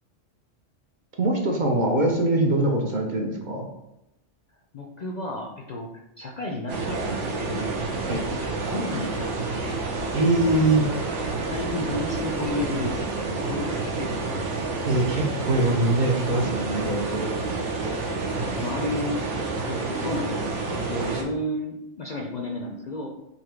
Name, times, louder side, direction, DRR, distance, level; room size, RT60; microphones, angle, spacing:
voice 1, 1.2-3.7 8.1-8.2 10.1-10.8 14.8-17.3, right 2 dB, 50° right, 1 dB, 0.7 m, -23 dB
voice 2, 4.7-5.9 6.2-7.8 8.3-9.8 10.4-10.7 11.5-14.4 18.0-23.1, left 2 dB, 55° left, 0 dB, 0.5 m, -33 dB
sound 1, 6.7-21.2, right 3 dB, 85° right, 1.1 m, -29 dB
4.0 x 2.8 x 4.4 m, 0.88 s
omnidirectional pair, 1.2 m